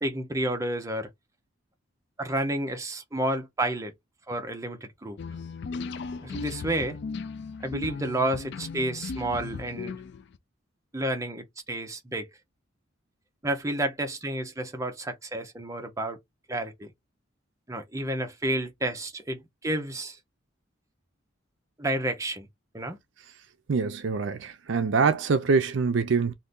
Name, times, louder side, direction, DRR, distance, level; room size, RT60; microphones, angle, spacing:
voice 1, 0.0-1.1 2.2-3.9 4.3-5.2 6.2-7.0 7.6-10.0 10.9-12.3 13.4-16.2 16.5-16.9 17.7-20.2 21.8-22.5 22.7-23.0, right 1 dB, 15° right, 0.7 m, -30 dB
sound 1, 5.2-10.4, left 4 dB, 55° left, 0.4 m, -36 dB
voice 2, 23.7-26.3, right 5 dB, 65° right, 0.4 m, -24 dB
2.7 x 2.5 x 3.5 m
head